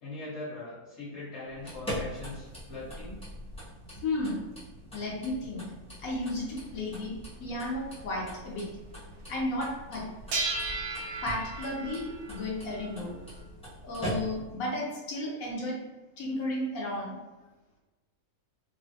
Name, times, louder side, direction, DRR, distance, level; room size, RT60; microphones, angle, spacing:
voice 1, 0.0-3.2, left 2 dB, 50° left, -8 dB, 1.4 m, -41 dB
sound 1, 1.5-14.6, equal, 5° left, 0.7 m, -42 dB
voice 2, 3.9-4.4 4.9-5.6 6.0-7.1 7.4-8.7 9.3-10.0 11.2-13.2 13.8-15.7 16.2-17.1, left 1 dB, 70° left, -4 dB, 1.2 m, -33 dB
sound 2, 6.0-6.1 7.0-7.1 7.5-7.6 8.1-8.3 10.3-13.4, right 3 dB, 90° right, 1.1 m, -36 dB
3.7 x 2.0 x 2.7 m, 1.1 s
omnidirectional pair, 1.5 m